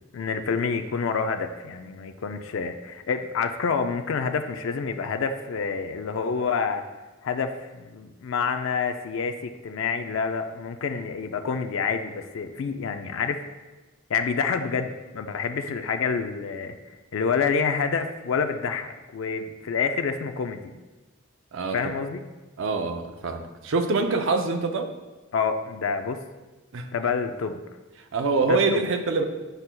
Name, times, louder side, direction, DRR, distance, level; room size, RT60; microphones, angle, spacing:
voice 1, 0.1-6.9 7.2-13.4 14.1-16.7 17.1-20.8 21.7-22.2 25.3-26.2 26.9-27.6 28.4-28.8, left 5 dB, 65° left, 7 dB, 0.4 m, -28 dB
voice 2, 22.6-24.9 26.7-26.8 28.1-29.2, right 4 dB, 65° right, 6 dB, 0.5 m, -25 dB
7.9 x 5.6 x 2.2 m, 1.2 s
head